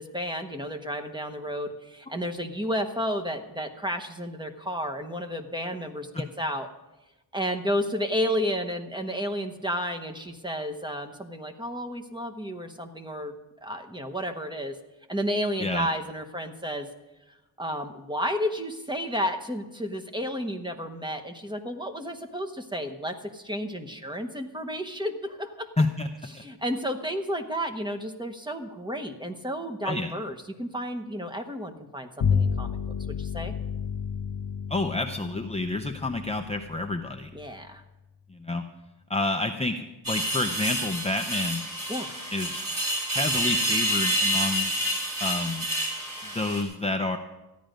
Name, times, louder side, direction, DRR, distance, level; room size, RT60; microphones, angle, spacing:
voice 1, 0.0-6.7 7.3-13.3 13.6-14.8 15.1-16.9 17.6-25.7 26.3-32.8 33.2-33.5 37.3-37.8 41.9-42.2, equal, 10° right, 5 dB, 1.0 m, -32 dB
voice 2, 25.8-26.1 29.8-30.1 34.7-37.3 38.3-38.6 39.1-41.6 42.3-42.6 43.1-44.7 45.2-45.7 46.3-47.2, left 2 dB, 15° left, 4 dB, 0.6 m, -29 dB
Bowed string instrument, 32.2-37.8, left 6 dB, 85° left, 0.8 m, -31 dB
sound 1, 40.0-46.6, equal, 50° right, 3.0 m, -28 dB
14.0 x 10.0 x 5.2 m, 1.0 s
wide cardioid pair, 110°, 42 cm